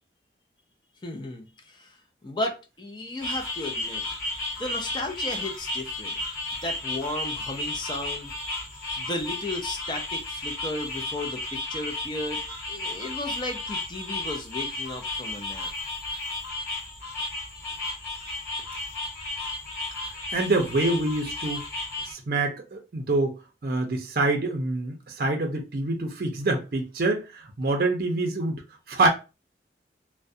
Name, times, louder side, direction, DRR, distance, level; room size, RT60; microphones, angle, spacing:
voice 1, 1.0-2.0 2.2-4.0 4.6-6.1 6.6-8.3 9.0-12.4 12.7-15.7, left 1 dB, 25° left, 0.4 m, -34 dB
sound 1, 3.2-22.1, left 2 dB, 50° left, 1.4 m, -33 dB
voice 2, 20.3-21.6 22.0-28.6 28.9-29.1, right 2 dB, 55° right, 0.4 m, -26 dB
2.3 x 2.0 x 2.6 m
head